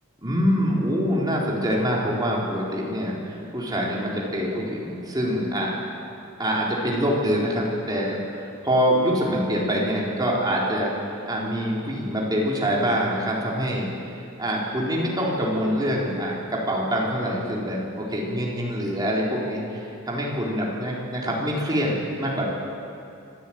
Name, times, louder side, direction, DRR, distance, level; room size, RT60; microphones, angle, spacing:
voice 1, 0.2-5.7 6.4-10.9 11.3-13.9 14.4-22.4, equal, 20° right, -4 dB, 4.0 m, -25 dB
25.5 x 13.5 x 9.0 m, 2.7 s
head